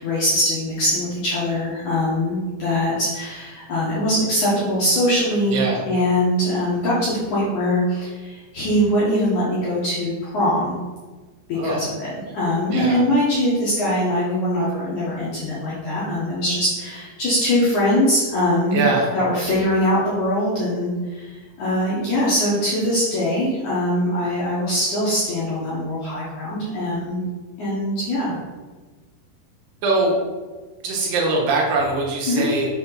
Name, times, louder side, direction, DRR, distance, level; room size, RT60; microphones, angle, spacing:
voice 1, 0.0-10.7 11.5-12.1 12.3-18.8 19.1-27.2 27.6-28.4 32.3-32.5, left 1 dB, 65° left, -8 dB, 2.0 m, -22 dB
voice 2, 5.5-5.8 11.5-11.8 12.7-13.0 18.7-19.1 29.8-30.2 30.8-32.7, right 2 dB, 70° right, -2 dB, 3.0 m, -22 dB
6.7 x 4.3 x 5.7 m, 1.3 s
omnidirectional pair, 5.3 m